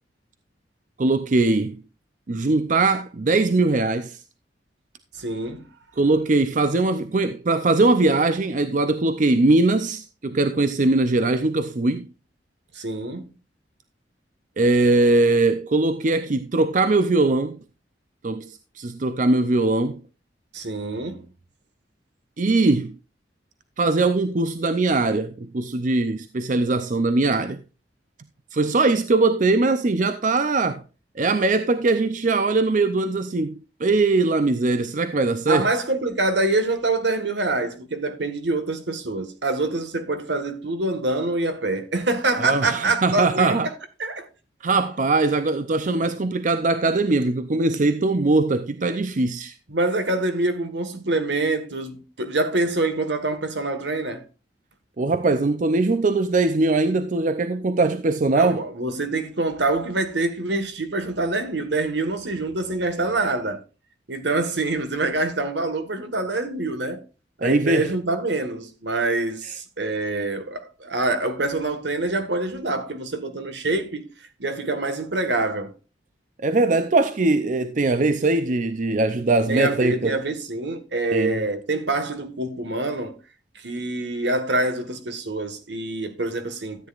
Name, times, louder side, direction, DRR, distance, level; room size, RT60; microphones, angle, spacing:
voice 1, 1.0-1.8 2.3-4.2 6.0-12.1 14.6-17.6 18.2-20.0 22.4-22.9 23.8-27.6 28.5-30.8 31.2-35.7 42.4-43.7 44.6-49.5 55.0-58.6 67.4-67.9 76.4-80.2 81.1-81.4, right 2 dB, 45° right, 0.5 m, -21 dB
voice 2, 5.2-5.7 12.7-13.3 20.5-21.3 35.5-43.7 44.0-44.3 49.7-54.2 58.3-63.6 64.1-67.0 67.4-74.1 74.4-75.7 79.5-83.1 83.5-86.9, right 2 dB, 70° right, 1.6 m, -25 dB
13.5 x 9.2 x 2.5 m
head